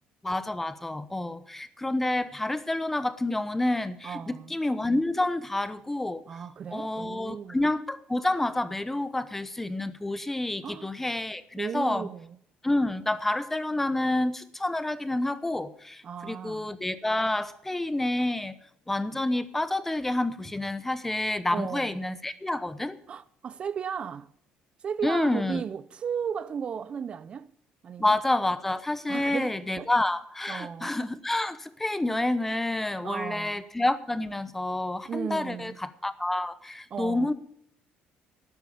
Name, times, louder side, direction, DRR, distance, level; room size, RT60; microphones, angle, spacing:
voice 1, 0.2-6.2 6.7-12.1 12.6-18.5 18.9-23.0 25.0-25.6 28.0-37.3, left 2 dB, 10° left, 0.8 m, -28 dB
voice 2, 4.0-4.5 6.3-7.6 10.6-10.9 11.6-12.4 16.0-16.7 21.5-22.0 23.1-24.3 24.8-27.5 27.8-28.1 29.1-29.9 30.5-30.9 33.0-33.6 35.1-35.8 36.9-37.3, right 7 dB, 35° right, 0.5 m, -35 dB
12.5 x 9.1 x 6.9 m
cardioid pair, 125°, 3 cm